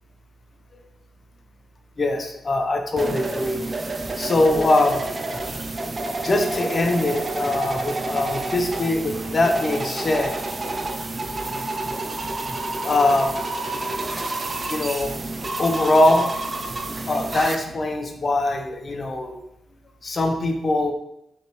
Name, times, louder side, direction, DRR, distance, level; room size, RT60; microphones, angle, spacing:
voice 1, 2.0-3.8 4.2-5.0 6.2-10.3 10.6-10.7 12.8-13.4 14.6-15.2 15.6-16.3 17.1-19.3 20.0-20.9, left 2 dB, 45° left, 4 dB, 0.8 m, -22 dB
sound 1, 3.0-17.6, right 2 dB, 40° right, 0.6 m, -29 dB
5.2 x 3.2 x 3.1 m, 0.81 s
cardioid pair, 60°, 0 cm